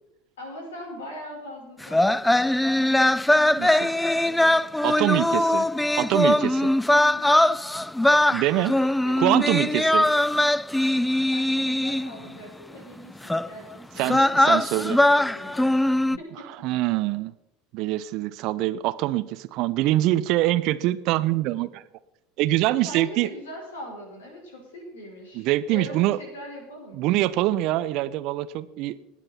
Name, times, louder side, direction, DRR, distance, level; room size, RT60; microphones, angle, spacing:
voice 1, 0.4-3.1 3.7-4.6 5.3-5.6 7.1-7.6 8.7-9.5 11.3-15.7 16.2-16.7 22.7-25.4 25.7-27.0, left 1 dB, 75° left, 1 dB, 5.2 m, -41 dB
sound 1, 1.8-12.3 13.3-13.5 14.0-16.2, left 1 dB, 5° left, 0.4 m, -21 dB
voice 2, 3.6-3.9 4.8-5.6 6.0-6.7 8.3-8.7 9.2-10.1 14.0-15.0 16.6-17.3 17.7-21.8 22.4-23.3 25.3-26.2 26.9-29.0, right 15 dB, 55° right, 16 dB, 0.7 m, -24 dB
20.0 x 9.0 x 4.4 m, 0.86 s
figure-of-eight pair, 70°, 0 cm